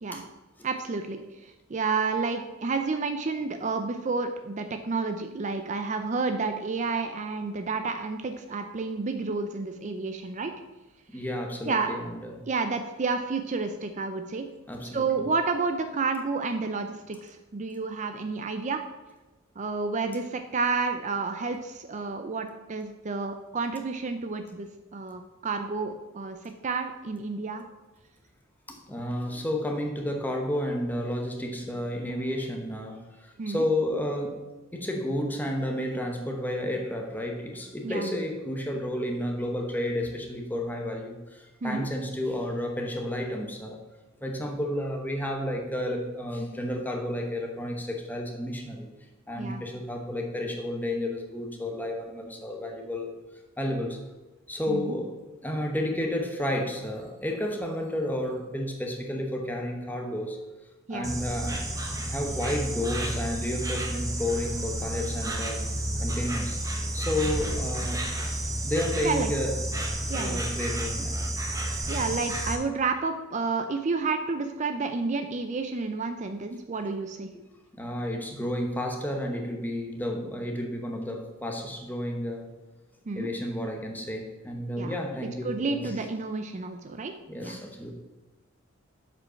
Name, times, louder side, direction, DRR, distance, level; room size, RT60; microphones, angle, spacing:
voice 1, 0.6-10.5 11.7-11.9 12.5-14.5 14.9-18.8 19.6-26.4 26.6-27.6 33.4-33.7 37.8-38.1 41.6-41.9 49.4-49.6 54.7-55.0 60.9-61.1 69.0-69.3 70.1-70.4 71.9-77.3 83.1-83.3 84.8-85.0 85.4-87.1 87.4-87.6, right 4 dB, 35° right, 7 dB, 0.5 m, -30 dB
voice 2, 11.1-12.4 14.7-15.3 28.7-34.4 34.7-43.8 44.2-48.9 49.3-53.1 53.6-54.0 54.5-55.1 55.4-60.4 60.9-61.7 62.1-65.6 66.0-66.6 66.9-68.1 68.6-69.6 70.1-71.2 77.3-77.5 77.7-82.5 83.1-85.9 87.3-87.9, left 1 dB, 10° left, 2 dB, 1.1 m, -31 dB
Insect, 61.0-72.6, right 1 dB, 15° right, 1.0 m, -31 dB
7.5 x 5.2 x 5.7 m, 1.1 s
head